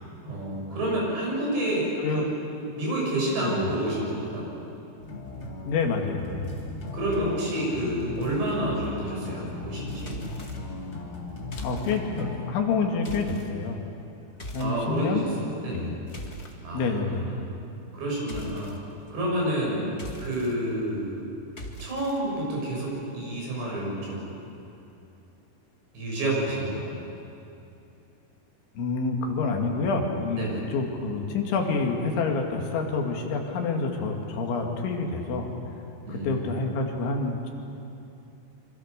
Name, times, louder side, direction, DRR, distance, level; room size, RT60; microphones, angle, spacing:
voice 1, 0.2-2.3 2.7-4.5 6.9-10.2 14.6-16.0 16.6-17.5 17.9-18.8 19.1-19.9 20.2-21.2 21.8-24.4 25.9-27.0 30.4-30.7 36.1-36.6, right 1 dB, 70° right, -3 dB, 9.2 m, -29 dB
sound 1, 5.0-12.5, left 2 dB, 35° left, 3.2 m, -37 dB
voice 2, 5.7-6.5 11.6-13.8 14.5-15.2 15.7-15.9 16.7-17.3 28.8-35.5 36.1-37.5, left 4 dB, 85° left, 2 dB, 4.7 m, -28 dB
sound 2, 10.1-10.6 11.5-12.0 13.0-13.5 14.4-14.7 15.8-16.5 18.3-18.8 19.9-20.5 21.6-22.2, equal, 65° left, 0.6 m, -40 dB
25.5 x 25.5 x 6.8 m, 2.8 s
omnidirectional pair, 5.2 m